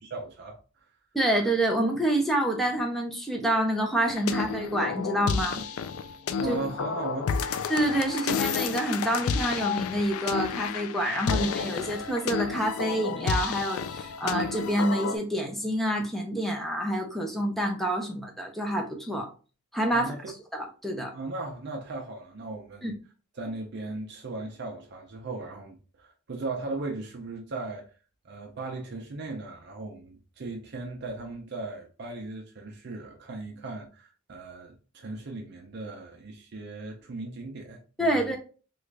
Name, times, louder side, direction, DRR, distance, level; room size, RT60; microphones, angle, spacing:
voice 1, 0.0-0.6 6.4-7.3 19.9-20.3 21.1-23.0 23.3-27.8 28.2-38.3, right 2 dB, 50° right, 0.5 m, -37 dB
voice 2, 1.1-5.6 6.4-6.6 7.7-19.3 19.7-20.1 20.5-21.1 22.8-22.9 38.0-38.4, right 1 dB, ahead, 0.5 m, -27 dB
sound 1, 4.1-15.2, left 6 dB, 75° left, 0.3 m, -31 dB
3.1 x 2.4 x 3.2 m
head